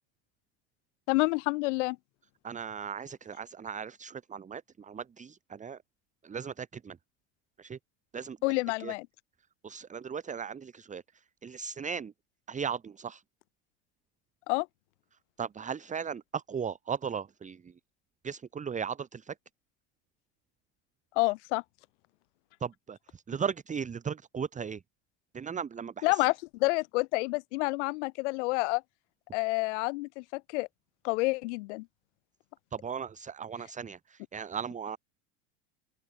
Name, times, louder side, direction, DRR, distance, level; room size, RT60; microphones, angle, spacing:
voice 1, 1.1-2.0 8.4-9.1 14.5-14.7 21.2-21.6 26.0-28.8 29.3-30.7 31.0-31.9, left 24 dB, 75° left, 0.5 m, -28 dB
voice 2, 2.4-5.8 6.2-7.0 7.6-7.8 8.1-8.4 8.8-8.9 9.6-11.0 11.4-12.1 12.5-13.2 15.4-17.7 18.2-19.3 22.6-24.8 25.3-26.2 32.7-35.0, right 7 dB, 20° right, 1.3 m, -37 dB
open air
supercardioid pair, 105°, 35 cm